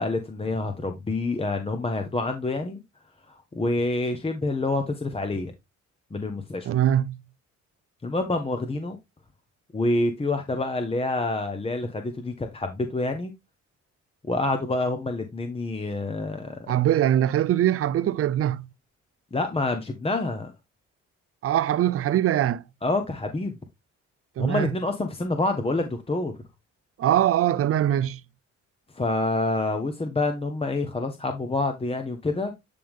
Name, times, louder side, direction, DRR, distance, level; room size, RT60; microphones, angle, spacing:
voice 1, 0.0-2.8 3.3-5.5 6.1-6.7 8.0-9.0 9.7-13.3 14.3-16.7 19.3-20.5 22.8-23.5 24.4-26.3 28.9-32.5, left 2 dB, 20° left, 1.0 m, -27 dB
voice 2, 6.7-7.2 16.7-18.7 21.4-22.6 24.4-24.7 27.0-28.2, right 11 dB, 50° right, 0.5 m, -22 dB
10.0 x 3.6 x 3.6 m
cardioid pair, 90°, 30 cm